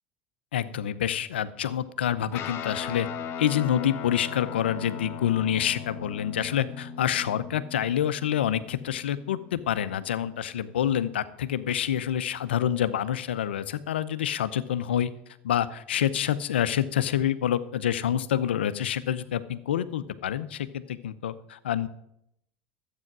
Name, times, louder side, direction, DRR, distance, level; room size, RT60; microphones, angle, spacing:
voice 1, 0.5-3.1 3.4-15.1 15.4-21.9, left 10 dB, 90° left, 14 dB, 0.7 m, -27 dB
Guitar, 2.3-11.1, left 7 dB, 50° left, 1.4 m, -39 dB
12.5 x 8.6 x 6.1 m, 0.76 s
hypercardioid pair, 85°, 6 cm